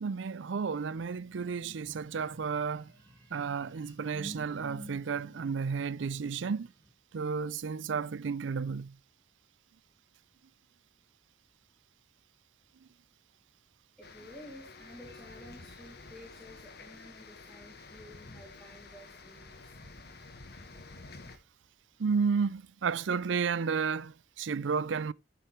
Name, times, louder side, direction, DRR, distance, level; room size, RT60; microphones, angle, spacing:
voice 1, 0.0-2.9 3.3-6.7 7.1-9.0 12.8-12.9 22.0-25.1, right 5 dB, 70° right, 0.5 m, -32 dB
sound 1, 0.9-6.9, equal, 20° right, 7.4 m, -52 dB
sound 2, 14.0-21.4, left 3 dB, 60° left, 1.6 m, -50 dB
voice 2, 14.0-19.6, left 1 dB, 5° left, 2.8 m, -52 dB
14.0 x 6.8 x 3.2 m
head